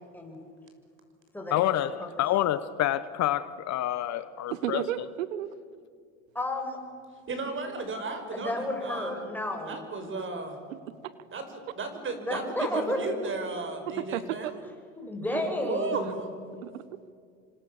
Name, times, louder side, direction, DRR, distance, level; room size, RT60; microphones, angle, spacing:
voice 1, 1.5-4.8, left 13 dB, 45° left, 1.0 m, -28 dB
voice 2, 4.5-5.5 10.7-10.8 11.0-11.1 12.6-13.1 13.9-14.5 15.3-15.4 16.0-16.1 16.6-17.0, right 12 dB, 85° right, 1.2 m, -33 dB
voice 3, 6.3-6.8 8.3-9.8 12.2-13.5 14.9-16.3, left 1 dB, 5° left, 6.9 m, -32 dB
voice 4, 7.3-9.2 9.7-10.6 11.3-14.6 15.5-16.3, right 3 dB, 30° right, 6.2 m, -35 dB
29.0 x 25.5 x 7.3 m
hypercardioid pair, 95°, 38 cm